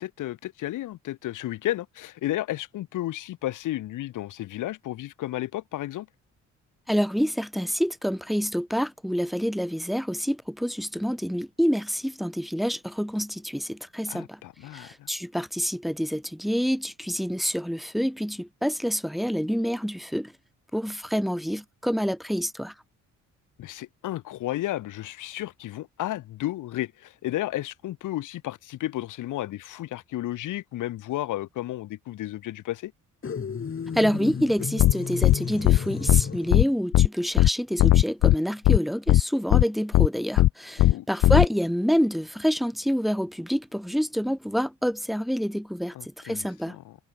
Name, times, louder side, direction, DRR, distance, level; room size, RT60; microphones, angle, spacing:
voice 1, 0.0-6.1 14.1-15.1 23.6-32.9 40.8-41.1 45.9-47.0, left 15 dB, 85° left, 7.5 m, -33 dB
voice 2, 6.9-14.4 14.7-20.3 20.7-22.7 33.9-46.8, equal, ahead, 4.4 m, -27 dB
sound 1, 33.2-36.7, left 6 dB, 45° left, 7.1 m, -33 dB
sound 2, 34.8-34.9 35.2-35.4 35.6-35.8 36.1-36.2 36.5-36.6 36.9-37.1 37.4-37.5 37.8-38.4 38.6-38.8 39.1-39.2 39.5-39.6 39.9-40.1 40.4-40.5 40.8-40.9 41.2-41.5, left 14 dB, 65° left, 0.6 m, -17 dB
cardioid pair, 90°, 30 cm